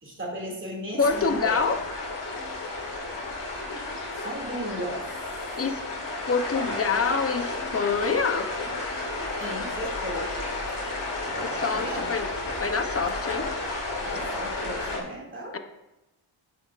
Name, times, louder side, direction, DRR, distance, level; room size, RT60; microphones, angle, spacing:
voice 1, 0.0-1.7 4.2-5.0 9.4-10.3 10.7-10.8 11.3-12.1 14.0-15.6, equal, 25° right, -2 dB, 2.4 m, -35 dB
sound 1, 1.0-15.0, left 2 dB, 60° left, 2.4 m, -32 dB
voice 2, 1.0-1.8 5.6-5.8 6.3-8.5 11.6-12.3 12.6-13.5 15.5-15.6, left 5 dB, 30° left, 7 dB, 0.7 m, -26 dB
9.9 x 7.6 x 2.5 m, 0.98 s
wide cardioid pair, 110°, 47 cm